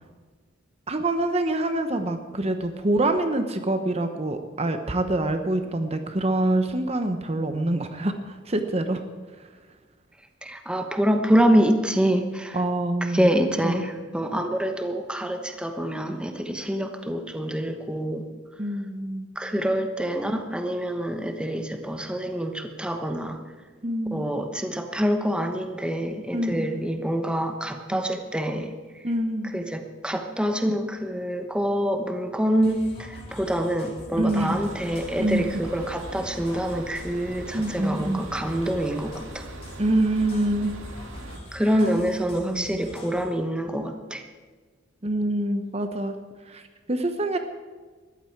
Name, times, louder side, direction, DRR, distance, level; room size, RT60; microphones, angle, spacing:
voice 1, 0.9-9.0 12.5-13.3 13.6-13.8 18.6-19.3 23.8-24.2 26.3-26.7 27.9-28.0 29.0-29.5 34.2-34.6 35.2-35.4 37.5-38.2 39.8-40.7 42.4-42.8 45.0-46.2 46.5-46.6 46.9-47.4, right 1 dB, 30° right, 7 dB, 0.9 m, -25 dB
voice 2, 10.4-12.6 13.0-18.3 19.3-23.4 24.1-29.0 29.5-39.5 41.5-44.2, equal, 5° right, 5 dB, 1.1 m, -26 dB
sound 1, 32.6-43.3, left 1 dB, 30° left, 3.5 m, -45 dB
sound 2, 34.4-41.4, right 1 dB, 80° right, 2.0 m, -41 dB
20.5 x 14.5 x 4.6 m, 1.5 s
head